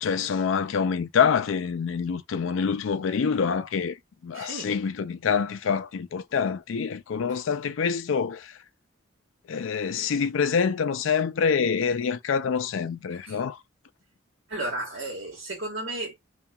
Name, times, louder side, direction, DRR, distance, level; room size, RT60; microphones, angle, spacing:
voice 1, 0.0-4.0 4.2-8.6 9.5-13.6, left 6 dB, 70° left, 0.4 m, -26 dB
voice 2, 4.3-4.7 7.3-7.4 13.2-13.4 14.5-16.2, right 2 dB, 75° right, 1.4 m, -33 dB
2.8 x 2.3 x 2.2 m
head